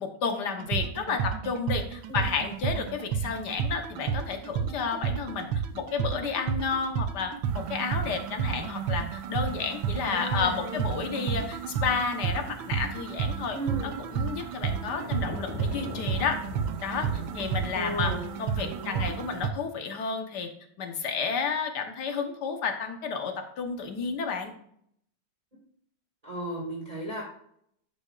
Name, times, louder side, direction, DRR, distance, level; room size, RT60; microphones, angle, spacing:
voice 1, 0.0-5.5 5.7-13.6 13.8-16.4 16.8-17.1 17.3-18.1 18.4-20.5 20.8-24.5, left 5 dB, 60° left, 5 dB, 1.6 m, -31 dB
sound 1, 0.6-19.5, right 7 dB, 80° right, 1.5 m, -31 dB
sound 2, 1.9-2.1 2.7-3.1 3.9-4.6 4.9-5.7 6.3-6.5 6.9-7.7 8.5-8.6 10.4-10.5 10.7-11.0 11.5-11.7 12.1-12.7 13.3-13.4 14.4-18.1, left 2 dB, 30° left, 1.2 m, -41 dB
voice 2, 10.0-11.2 13.5-13.9 15.0-15.1 17.7-18.3 18.6-19.1 26.2-27.2, right 1 dB, 20° right, -3 dB, 1.9 m, -35 dB
10.5 x 7.8 x 2.5 m, 0.68 s
omnidirectional pair, 2.2 m